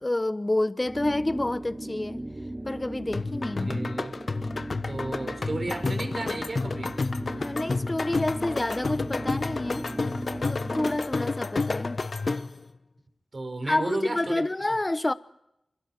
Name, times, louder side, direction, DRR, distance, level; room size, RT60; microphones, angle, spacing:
voice 1, 0.0-2.2 2.6-3.9 7.3-9.9 10.5-12.0 13.6-15.1, left 2 dB, 30° left, 1.0 m, -28 dB
sound 1, 0.8-11.2, right 1 dB, 35° right, 2.7 m, -38 dB
sound 2, 3.1-12.6, left 3 dB, 60° left, 1.1 m, -30 dB
voice 2, 3.6-4.2 4.9-6.9 13.3-14.4, right 2 dB, 55° right, 4.9 m, -33 dB
28.0 x 22.5 x 4.5 m
cardioid pair, 45°, 0 cm